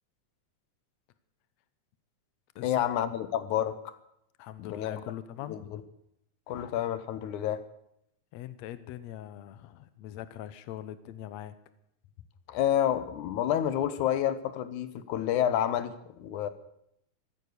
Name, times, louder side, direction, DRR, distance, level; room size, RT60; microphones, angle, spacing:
voice 1, 2.6-3.9 4.6-5.0 5.5-5.8 6.5-7.6 12.5-16.5, left 10 dB, 90° left, 13 dB, 2.5 m, -29 dB
voice 2, 4.4-5.7 8.3-11.6, left 12 dB, 70° left, 13 dB, 2.0 m, -42 dB
15.0 x 14.0 x 6.6 m, 0.77 s
omnidirectional pair, 3.4 m